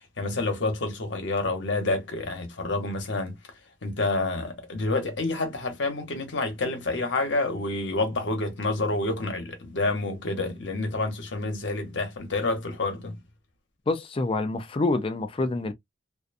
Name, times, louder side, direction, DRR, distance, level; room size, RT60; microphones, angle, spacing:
voice 1, 0.2-3.4 3.8-13.2, left 2 dB, 65° left, 0.9 m, -28 dB
voice 2, 13.9-15.7, left 2 dB, 30° left, 0.4 m, -27 dB
2.5 x 2.2 x 2.5 m
head